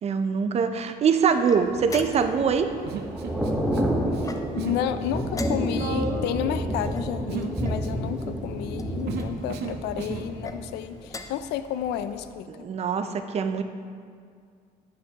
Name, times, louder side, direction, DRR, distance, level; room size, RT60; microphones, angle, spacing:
voice 1, 0.0-2.8 12.5-13.6, right 6 dB, 40° right, 8 dB, 0.5 m, -23 dB
sound 1, 1.4-2.5 4.2-4.8 5.3-6.0 6.9-7.9 8.7-9.3 10.3-10.6 11.0-11.5, left 3 dB, 20° left, 0.4 m, -40 dB
Thunder / Rain, 1.5-11.4 11.8-12.0, equal, 5° right, 1.0 m, -30 dB
Human voice, 2.9-3.8 4.1-4.8 5.1-10.3, right 4 dB, 80° right, 0.7 m, -35 dB
voice 2, 4.5-12.5, left 10 dB, 80° left, 11 dB, 0.4 m, -31 dB
9.4 x 6.8 x 2.9 m, 2.1 s
cardioid pair, 110°, 17 cm